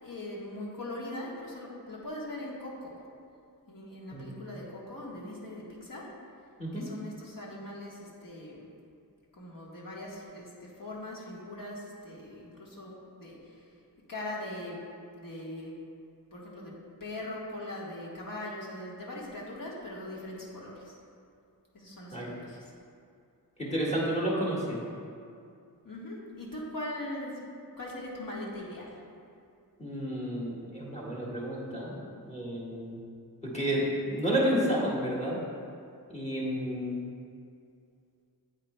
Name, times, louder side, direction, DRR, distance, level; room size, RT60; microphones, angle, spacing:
voice 1, 0.0-3.0 3.7-6.1 6.7-8.6 9.3-13.4 14.1-14.8 15.2-15.8 16.3-20.9 21.7-22.7 25.8-27.5 27.8-29.0, left 1 dB, 60° left, -4 dB, 1.5 m, -41 dB
voice 2, 23.6-24.8 29.8-31.9 32.3-33.0 33.4-35.4 36.1-37.0, equal, 20° left, -6 dB, 1.7 m, -31 dB
8.7 x 8.1 x 2.2 m, 2.4 s
wide cardioid pair, 130°, 37 cm